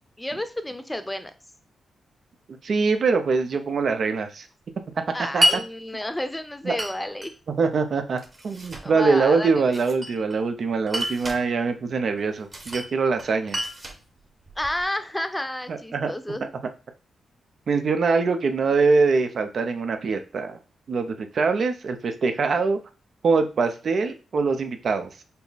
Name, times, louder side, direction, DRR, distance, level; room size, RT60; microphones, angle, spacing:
voice 1, 0.2-1.3 5.1-7.3 8.8-9.6 14.6-16.5, left 1 dB, 10° left, 10 dB, 0.7 m, -30 dB
voice 2, 2.6-4.5 5.3-5.4 6.6-6.8 7.6-13.6 15.7-16.1 17.7-20.6 20.9-22.8 23.2-25.1, right 4 dB, 60° right, 7 dB, 0.7 m, -23 dB
Glass, 5.4-5.6 6.8-7.3 8.2-8.9 9.7-10.4 10.9-11.4 12.5-12.9 13.2-14.8, equal, 35° right, 1.2 m, -28 dB
5.5 x 2.0 x 4.1 m, 0.33 s
cardioid pair, 60°, 0 cm